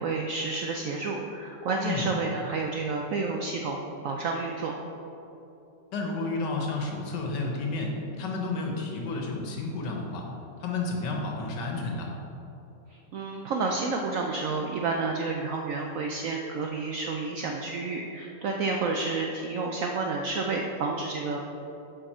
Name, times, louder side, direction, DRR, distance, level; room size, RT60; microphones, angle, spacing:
voice 1, 0.0-4.7 12.9-21.4, right 3 dB, 85° right, 1 dB, 0.7 m, -30 dB
voice 2, 5.9-10.2 10.6-12.1, left 3 dB, 75° left, 0 dB, 1.6 m, -31 dB
7.1 x 5.2 x 4.3 m, 2.9 s
omnidirectional pair, 2.0 m